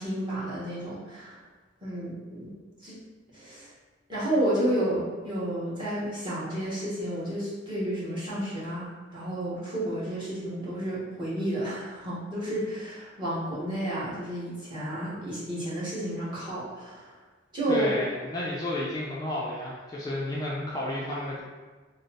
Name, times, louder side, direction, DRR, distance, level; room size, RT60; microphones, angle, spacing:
voice 1, 0.0-1.4 1.8-2.5 2.8-3.0 3.3-3.7 4.1-17.1 17.5-17.9, right 1 dB, 25° right, -10 dB, 1.3 m, -31 dB
voice 2, 17.7-21.4, left 1 dB, 20° left, -6 dB, 0.4 m, -32 dB
3.1 x 2.0 x 4.0 m, 1.3 s
head